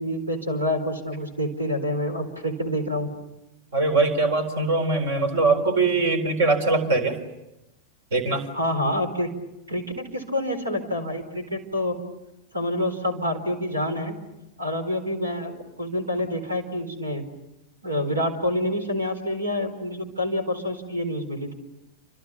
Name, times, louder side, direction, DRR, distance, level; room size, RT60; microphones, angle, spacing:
voice 1, 0.0-3.1 8.5-9.3 9.7-11.9 12.5-14.2 14.6-17.2 17.8-21.5, left 1 dB, 80° right, 9 dB, 4.2 m, -27 dB
voice 2, 3.7-7.2 8.1-8.5, right 3 dB, 60° right, 9 dB, 4.2 m, -22 dB
29.0 x 26.0 x 7.0 m, 0.95 s
figure-of-eight pair, 90°, 0 cm